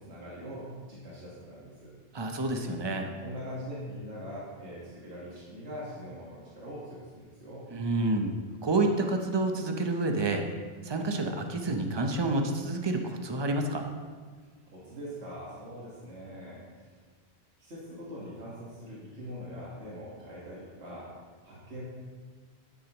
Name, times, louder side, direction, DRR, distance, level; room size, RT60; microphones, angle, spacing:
voice 1, 0.0-1.9 3.2-7.7 14.7-16.9 17.6-21.1 21.4-21.8, equal, 80° right, -7 dB, 2.0 m, -42 dB
voice 2, 2.1-3.1 7.7-8.3 8.6-10.4 10.8-13.9, right 2 dB, 25° right, 4 dB, 0.7 m, -29 dB
10.0 x 9.2 x 3.0 m, 1.5 s
omnidirectional pair, 1.1 m